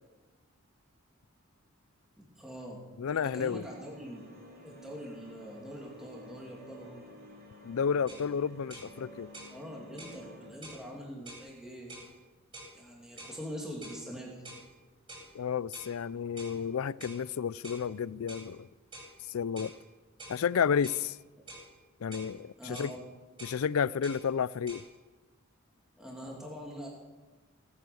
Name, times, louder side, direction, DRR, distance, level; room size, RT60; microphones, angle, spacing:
voice 1, 2.2-4.2 4.6-7.1 9.5-11.9 12.7-14.4 22.6-23.0 26.0-26.9, equal, 5° right, 2.7 m, -44 dB
voice 2, 3.0-3.6 7.6-9.3 15.3-18.7 19.3-19.7 20.3-21.2 22.0-22.9 23.4-24.8, left 7 dB, 80° left, 0.4 m, -31 dB
sound 1, 3.5-10.5, equal, 45° right, 3.6 m, -52 dB
sound 2, 8.1-8.3 8.7-8.9 9.3-9.6 10.0-10.2 10.6-10.8 11.3-11.5 11.9-12.1 12.5-12.7 13.2-13.4 13.8-14.0 14.4-14.7 15.1-15.3 15.7-15.9 16.4-16.6 17.0-17.2 17.6-17.9 18.3-18.5 18.9-19.1 19.6-19.8 20.2-20.4 20.8-21.0 21.5-21.7 22.1-22.3 22.7-23.0 23.4-23.6 24.0-24.2 24.7-24.8, right 1 dB, 25° right, 7.2 m, -47 dB
18.0 x 9.9 x 7.0 m
head